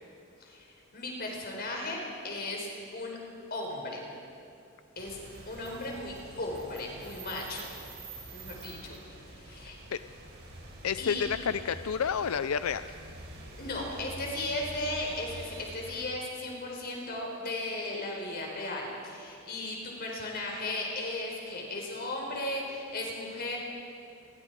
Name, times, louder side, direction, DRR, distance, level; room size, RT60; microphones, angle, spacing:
voice 1, 0.9-3.2 3.5-4.0 5.0-5.2 5.5-7.7 8.3-9.0 9.4-9.8 11.0-11.2 13.6-23.6, left 2 dB, 50° left, 0 dB, 4.6 m, -36 dB
sound 1, 5.0-16.0, right 2 dB, 55° right, 5.4 m, -47 dB
voice 2, 10.8-12.9, left 7 dB, 85° left, 12 dB, 0.5 m, -30 dB
29.5 x 23.5 x 4.9 m, 2.5 s
head